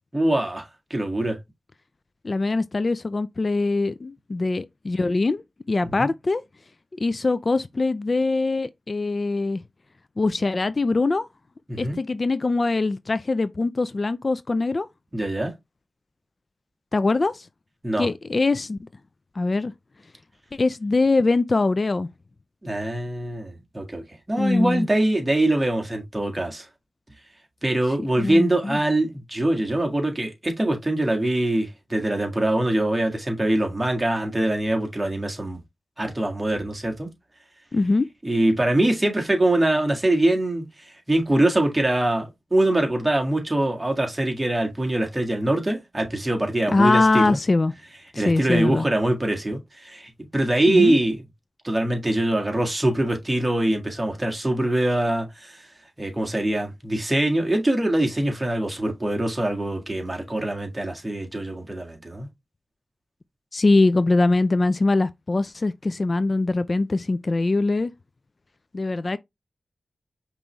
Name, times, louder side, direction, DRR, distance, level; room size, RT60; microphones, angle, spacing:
voice 1, 0.1-0.6 0.9-1.4 6.0-6.1 11.7-12.0 15.1-15.5 17.8-18.1 22.6-26.6 27.6-35.6 36.0-37.1 38.2-47.4 48.2-51.2 51.6-55.6 56.0-62.3, right 1 dB, 20° right, 1.6 m, -23 dB
voice 2, 2.2-6.4 7.0-9.6 10.2-11.3 11.8-14.9 16.9-17.5 18.0-18.8 19.4-19.7 20.5-22.1 24.4-24.9 28.2-28.8 37.7-38.1 46.7-47.7 48.1-48.9 50.7-51.0 63.5-67.9 68.7-69.2, left 3 dB, 45° left, 0.3 m, -22 dB
5.3 x 3.0 x 3.3 m
cardioid pair, 60°, 0 cm